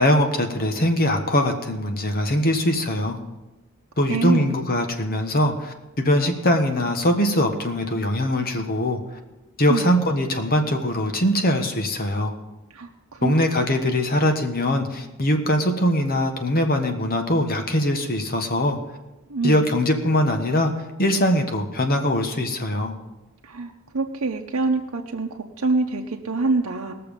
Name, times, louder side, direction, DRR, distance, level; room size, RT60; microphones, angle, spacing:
voice 1, 0.0-3.2 4.0-9.0 9.6-12.3 13.2-18.8 19.4-22.9, left 1 dB, 45° left, 5 dB, 1.3 m, -22 dB
voice 2, 4.1-4.5 9.7-9.9 12.7-13.3 19.3-19.7 23.4-26.9, right 3 dB, 80° right, 1 dB, 0.8 m, -25 dB
19.5 x 6.8 x 5.3 m, 1.0 s
head